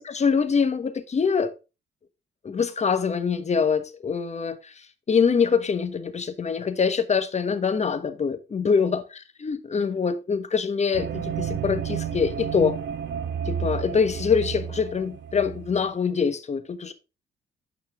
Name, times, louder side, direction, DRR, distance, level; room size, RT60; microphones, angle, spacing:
voice 1, 0.0-1.5 2.4-4.7 5.1-12.8 13.5-16.9, left 6 dB, 35° left, 1.1 m, -24 dB
sound 1, 10.9-16.0, right 8 dB, 65° right, 1.0 m, -31 dB
9.3 x 5.5 x 3.5 m
cardioid pair, 90°, 20 cm